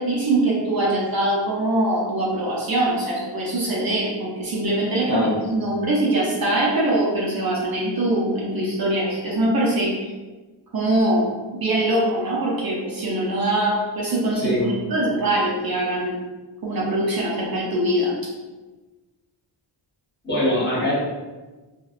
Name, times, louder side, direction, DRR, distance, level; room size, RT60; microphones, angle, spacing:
voice 1, 0.0-9.9 10.7-16.2 16.6-18.2, right 1 dB, 50° right, -4 dB, 0.6 m, -23 dB
voice 2, 20.2-20.9, left 1 dB, 20° left, -8 dB, 1.0 m, -22 dB
2.6 x 2.1 x 2.3 m, 1.2 s
wide cardioid pair, 120°, 47 cm